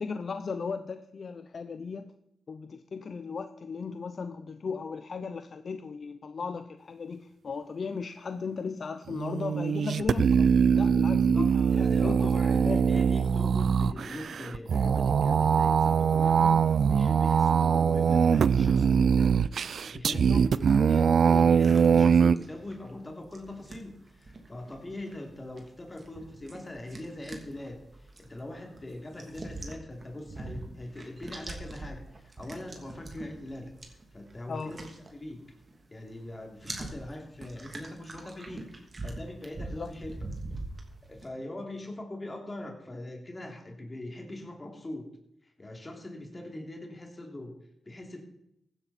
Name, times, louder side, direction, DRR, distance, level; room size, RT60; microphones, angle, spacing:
voice 1, 0.0-2.1 2.5-10.5 10.7-12.3 12.6-12.8 20.1-20.4 34.5-34.7 39.8-39.9, left 5 dB, 55° left, 9 dB, 0.7 m, -36 dB
sound 1, 9.1-22.4, right 6 dB, 70° right, 0.4 m, -23 dB
voice 2, 11.3-34.8 35.1-35.4 35.9-40.3 41.1-45.1 45.4-47.5 47.8-48.2, left 1 dB, 30° left, 2 dB, 3.0 m, -42 dB
sound 2, 21.6-35.8 36.1-41.3, right 2 dB, 40° right, 2.8 m, -44 dB
15.5 x 10.0 x 4.3 m, 0.78 s
cardioid pair, 55°, 0 cm